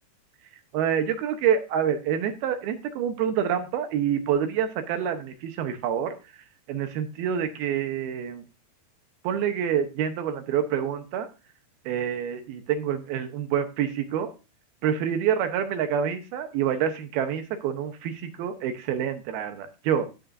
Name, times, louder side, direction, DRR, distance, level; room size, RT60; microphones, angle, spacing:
voice 1, 0.7-6.2 6.7-8.4 9.2-11.3 11.9-14.3 14.8-20.1, right 8 dB, 75° right, 8 dB, 2.7 m, -27 dB
15.0 x 7.5 x 2.6 m, 0.29 s
omnidirectional pair, 4.8 m